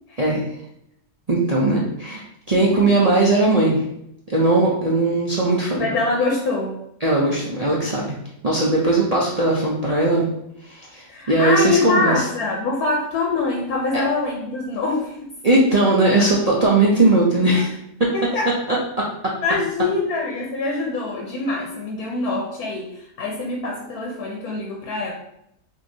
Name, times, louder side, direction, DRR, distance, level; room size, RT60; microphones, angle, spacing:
voice 1, 1.3-3.8 4.3-6.0 7.0-8.1 8.4-10.3 10.6-12.3 15.4-17.7 19.0-19.1, right 2 dB, 85° right, -5 dB, 0.3 m, -19 dB
voice 2, 5.8-6.7 11.1-15.1 18.1-18.5 19.4-25.1, left 3 dB, 70° left, 0 dB, 1.1 m, -24 dB
6.1 x 2.8 x 2.7 m, 0.78 s
omnidirectional pair, 1.7 m